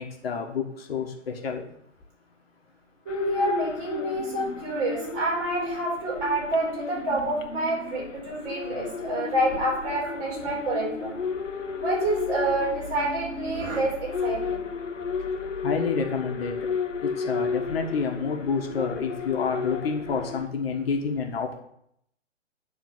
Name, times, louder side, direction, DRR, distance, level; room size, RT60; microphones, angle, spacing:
voice 1, 0.0-1.6 15.6-16.8 17.0-21.6, left 5 dB, 55° left, 2 dB, 1.5 m, -29 dB
voice 2, 3.0-11.2 11.8-14.7, right 1 dB, 30° right, -4 dB, 4.4 m, -28 dB
sound 1, 3.1-20.5, left 5 dB, 85° left, 1.0 m, -33 dB
9.4 x 4.3 x 7.4 m, 0.72 s
figure-of-eight pair, 135°, 36 cm